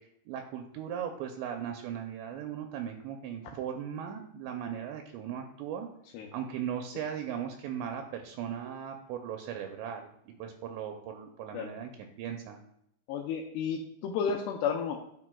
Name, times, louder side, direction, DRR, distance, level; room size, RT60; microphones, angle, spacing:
voice 1, 0.0-5.9 6.3-10.1 10.4-11.9 12.2-12.6, right 8 dB, 85° right, 4 dB, 2.8 m, -38 dB
voice 2, 13.1-15.0, left 6 dB, 80° left, 0 dB, 2.5 m, -32 dB
10.5 x 6.0 x 2.2 m, 0.75 s
omnidirectional pair, 5.1 m